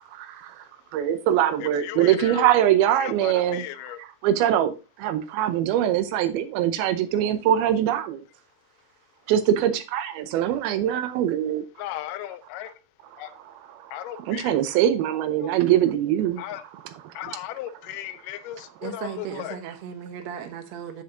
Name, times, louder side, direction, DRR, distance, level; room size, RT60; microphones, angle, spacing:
voice 1, 0.1-0.6 0.9-3.6 4.2-8.2 9.3-11.7 13.8-13.9 14.3-16.4 17.1-17.2, right 11 dB, 90° right, 2.7 m, -23 dB
voice 2, 1.6-2.5 3.0-4.0 11.8-12.7 13.2-13.3 13.9-14.5 16.4-16.6 17.2-19.6, left 13 dB, 85° left, 1.9 m, -36 dB
voice 3, 18.8-21.0, right 8 dB, 70° right, 1.7 m, -36 dB
9.5 x 6.6 x 2.7 m
omnidirectional pair, 4.3 m